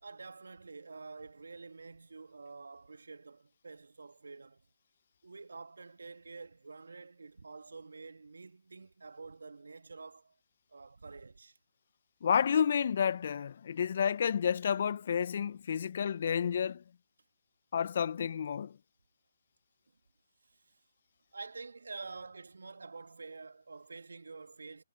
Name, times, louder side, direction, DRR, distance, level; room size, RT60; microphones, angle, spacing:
voice 1, 0.0-4.6 5.2-10.4 10.7-11.6 20.4-20.8 21.3-24.8, right 4 dB, 75° right, 2.2 m, -48 dB
voice 2, 12.2-16.8 17.7-18.8, left 7 dB, 50° left, 1.2 m, -30 dB
figure-of-eight pair, 140°, 0 cm